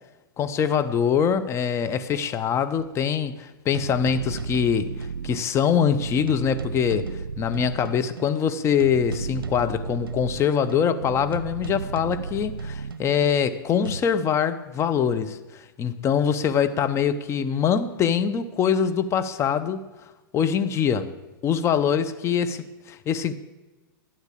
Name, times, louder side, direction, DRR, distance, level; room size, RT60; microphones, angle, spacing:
voice 1, 0.4-7.1 7.4-19.8 20.3-21.1 21.4-23.3, left 7 dB, 25° left, 0.9 m, -24 dB
sound 1, 2.8-2.9 3.7-14.0, right 4 dB, 85° right, 0.6 m, -34 dB
12.0 x 9.5 x 8.6 m
hypercardioid pair, 110°, 12 cm